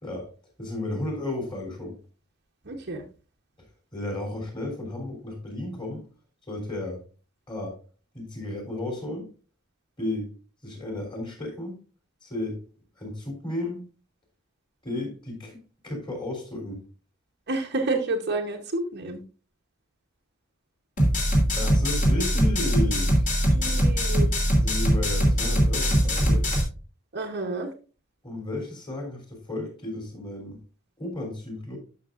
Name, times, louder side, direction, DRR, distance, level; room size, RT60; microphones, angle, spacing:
voice 1, 0.0-0.3 0.6-2.0 3.9-6.0 6.5-7.0 7.5-7.8 8.1-9.3 10.0-10.3 10.6-11.7 12.2-12.6 13.0-13.8 14.8-16.8 21.5-23.2 24.5-26.5 28.2-30.6 31.0-31.8, left 1 dB, 25° left, 3.2 m, -33 dB
voice 2, 2.7-3.0 17.5-19.2 23.5-24.3 27.1-27.7, right 2 dB, 50° right, 1.0 m, -29 dB
sound 1, 21.0-26.6, equal, 40° left, 2.9 m, -22 dB
12.0 x 6.4 x 2.5 m
head